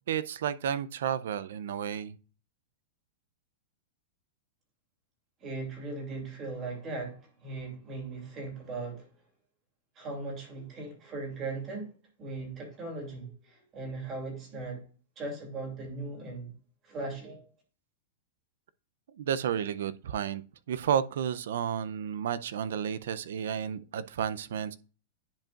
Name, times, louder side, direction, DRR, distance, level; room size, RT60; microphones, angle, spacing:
voice 1, 0.1-2.2 19.1-20.4 20.7-24.8, right 8 dB, 70° right, 0.5 m, -31 dB
voice 2, 5.4-9.0 10.0-11.9 12.2-14.8 15.2-16.5 16.8-17.5, right 3 dB, 20° right, 2.6 m, -38 dB
10.5 x 5.1 x 2.4 m
supercardioid pair, 170°, 0 cm